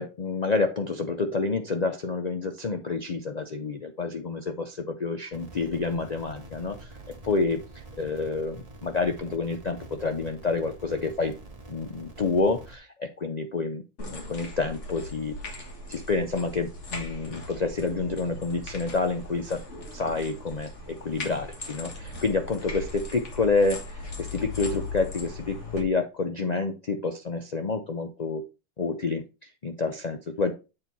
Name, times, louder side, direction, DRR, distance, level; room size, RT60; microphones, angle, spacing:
voice 1, 0.0-6.9 7.2-7.6 8.0-11.3 11.7-13.8 14.1-15.4 15.9-19.6 19.9-28.4 28.8-30.5, left 4 dB, 90° left, 5 dB, 0.3 m, -28 dB
sound 1, 5.3-12.8, right 2 dB, 25° right, 1.2 m, -46 dB
sound 2, 14.0-25.8, left 2 dB, 50° left, 2.0 m, -39 dB
7.8 x 4.5 x 4.0 m, 0.30 s
omnidirectional pair, 1.7 m